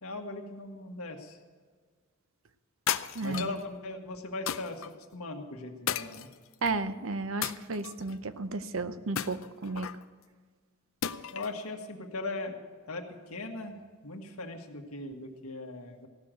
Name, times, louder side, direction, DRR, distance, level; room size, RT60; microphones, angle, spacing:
voice 1, 0.0-1.4 3.2-4.8 5.1-6.3 11.3-12.6 12.9-13.8 14.0-16.1, left 2 dB, 80° left, 3 dB, 1.7 m, -39 dB
sound 1, 2.9-3.6 4.5-4.9 5.9-6.7 7.4-8.2 9.2-10.0 11.0-11.6, left 9 dB, 65° left, 0.5 m, -34 dB
voice 2, 3.1-3.5 6.6-9.9, right 3 dB, 65° right, 12 dB, 0.7 m, -33 dB
15.5 x 6.7 x 9.0 m, 1.5 s
head